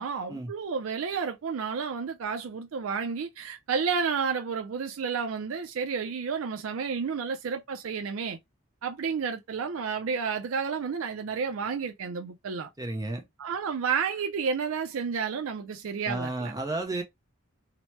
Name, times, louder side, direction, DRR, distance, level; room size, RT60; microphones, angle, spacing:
voice 1, 0.0-8.4 8.8-12.7 13.4-16.5, right 6 dB, 80° right, 0.4 m, -31 dB
voice 2, 12.8-13.2 16.1-17.0, right 2 dB, 15° right, 0.5 m, -32 dB
2.9 x 2.1 x 3.0 m
head